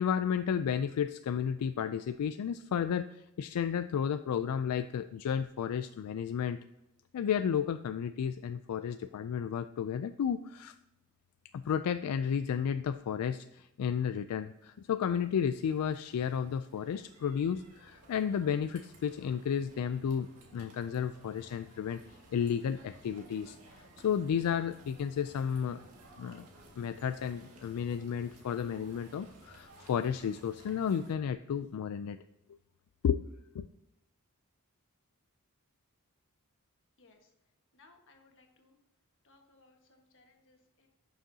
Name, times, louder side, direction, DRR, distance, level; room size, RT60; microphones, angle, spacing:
voice 1, 0.0-6.6 7.1-10.7 11.5-22.0 22.3-25.8 26.2-26.5 26.8-32.2 33.0-33.2 33.5-33.7, left 8 dB, 85° left, 10 dB, 0.3 m, -32 dB
sound 1, 14.6-31.1, right 1 dB, 80° right, 1.8 m, -57 dB
voice 2, 37.0-37.3 37.7-38.8 39.2-40.9, left 3 dB, 60° left, 3 dB, 1.5 m, -63 dB
11.5 x 6.3 x 2.8 m, 0.90 s
head